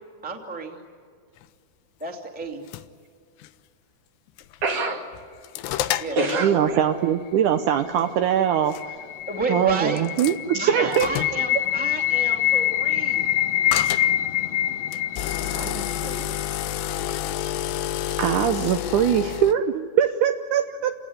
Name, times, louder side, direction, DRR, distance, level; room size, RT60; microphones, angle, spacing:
voice 1, 0.2-0.8 2.0-2.6 6.0-6.7 9.3-10.0 10.6-13.2, right 3 dB, 5° right, 2 dB, 1.9 m, -31 dB
sound 1, 2.4-2.8 3.4-3.5 4.4-4.7 5.1-6.4 8.0-8.1 8.7-8.8 10.0-10.4 10.9-11.4 13.7-14.1 14.9-19.5, left 12 dB, 90° left, 3.0 m, -29 dB
voice 2, 4.6-5.1 6.1-6.9 15.5-16.3, right 2 dB, 50° right, 2 dB, 3.7 m, -28 dB
voice 3, 6.4-8.9 9.5-11.1 15.4-15.7 18.2-20.9, right 9 dB, 75° right, 7 dB, 1.8 m, -22 dB
sound 2, 8.1-17.1, left 13 dB, 70° left, 2.7 m, -26 dB
29.0 x 19.0 x 10.0 m, 2.2 s
omnidirectional pair, 4.7 m